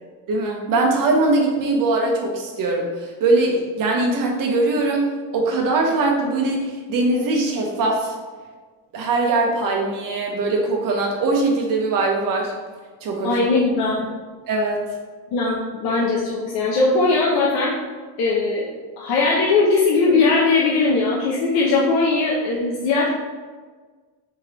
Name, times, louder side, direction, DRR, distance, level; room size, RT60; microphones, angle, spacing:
voice 1, 0.3-8.1 8.9-12.5 13.0-13.5 14.5-14.8, right 2 dB, 60° right, 1 dB, 0.9 m, -21 dB
voice 2, 13.2-14.1 15.3-17.7 18.2-18.7 19.0-23.1, left 3 dB, 85° left, -4 dB, 0.7 m, -19 dB
3.6 x 3.2 x 3.0 m, 1.4 s
cardioid pair, 115°, 37 cm